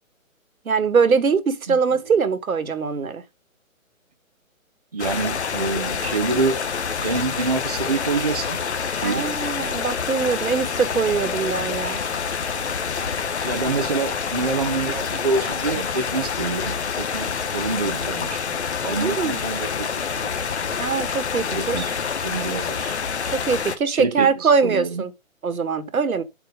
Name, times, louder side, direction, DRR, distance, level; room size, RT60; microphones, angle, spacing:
voice 1, 0.6-3.2 9.0-12.0 19.0-19.4 20.8-21.8 23.3-25.1 25.4-26.2, right 5 dB, 85° right, 1.7 m, -22 dB
voice 2, 1.7-2.0 4.9-6.6 7.0-8.6 8.9-9.3 13.4-20.3 21.5-21.9 22.2-22.9 23.9-25.0, right 4 dB, 30° right, 0.7 m, -27 dB
sound 1, 5.0-23.8, left 6 dB, 50° left, 1.1 m, -27 dB
7.8 x 4.6 x 5.1 m
hypercardioid pair, 170°, 41 cm